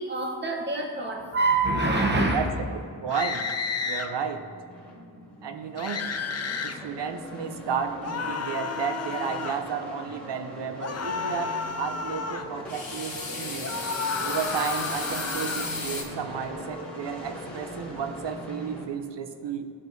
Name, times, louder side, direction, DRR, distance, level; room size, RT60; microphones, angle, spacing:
voice 1, 0.0-2.5, right 2 dB, 25° right, 0.9 m, -25 dB
sound 1, 1.1-18.9, equal, 5° left, 1.5 m, -41 dB
voice 2, 3.0-3.5 3.8-4.5 5.4-6.1 6.6-13.7 14.2-19.7, right 6 dB, 70° right, 0.6 m, -32 dB
sound 2, 3.1-4.1 5.8-6.8 8.0-9.6 10.8-12.5 13.6-15.8, left 5 dB, 35° left, 0.4 m, -32 dB
sound 3, 12.7-16.0, left 2 dB, 55° left, 1.5 m, -34 dB
13.5 x 4.5 x 2.7 m
wide cardioid pair, 95°, 43 cm